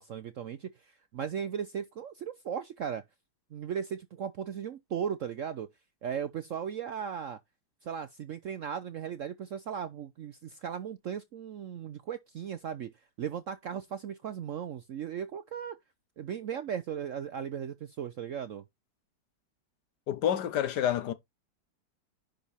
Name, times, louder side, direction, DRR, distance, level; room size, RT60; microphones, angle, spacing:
voice 1, 0.0-3.0 3.5-5.7 6.0-7.4 7.8-12.9 13.2-15.8 16.2-18.6, right 8 dB, 65° right, 0.8 m, -37 dB
voice 2, 20.1-21.1, left 10 dB, 70° left, 1.3 m, -28 dB
10.5 x 5.1 x 4.2 m
omnidirectional pair, 2.0 m